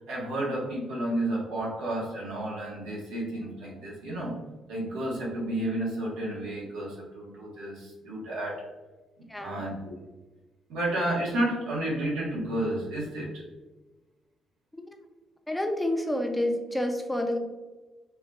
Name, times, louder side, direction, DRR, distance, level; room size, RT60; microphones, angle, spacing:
voice 1, 0.1-4.4 4.7-8.6 9.4-10.0 10.7-13.4, right 1 dB, 90° right, -4 dB, 1.3 m, -31 dB
voice 2, 9.3-9.7 14.7-14.8 15.5-17.4, left 1 dB, 5° left, 3 dB, 0.6 m, -29 dB
4.8 x 2.8 x 2.4 m, 1.2 s
cardioid pair, 90°, 0 cm